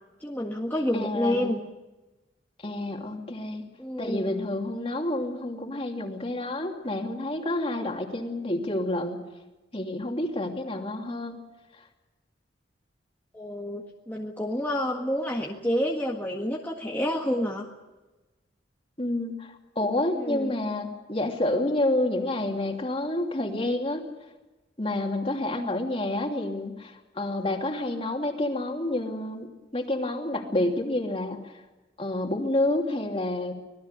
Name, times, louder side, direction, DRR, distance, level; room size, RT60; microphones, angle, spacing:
voice 1, 0.2-1.6 3.8-4.4 13.3-17.7 20.1-20.5, equal, 10° left, -2 dB, 1.7 m, -29 dB
voice 2, 0.9-1.6 2.6-3.6 4.0-9.2 9.7-11.4 19.0-24.0 24.8-29.5 29.7-31.5 32.0-33.5, left 1 dB, 30° left, 2 dB, 2.9 m, -29 dB
25.5 x 19.5 x 6.8 m, 1.1 s
head